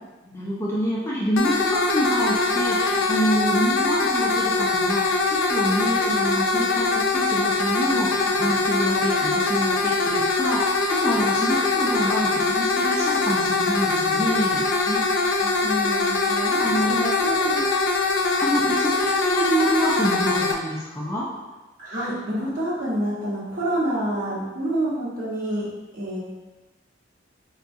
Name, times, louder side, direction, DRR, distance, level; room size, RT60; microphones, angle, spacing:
voice 1, 0.3-14.6 16.6-17.0 18.4-21.2, equal, 15° left, -6 dB, 0.4 m, -26 dB
sound 1, 1.4-20.5, left 3 dB, 80° left, 0.4 m, -22 dB
voice 2, 15.4-17.6 21.8-25.6 25.9-26.2, right 1 dB, 50° right, -8 dB, 1.0 m, -28 dB
3.7 x 2.3 x 2.6 m, 1.2 s
head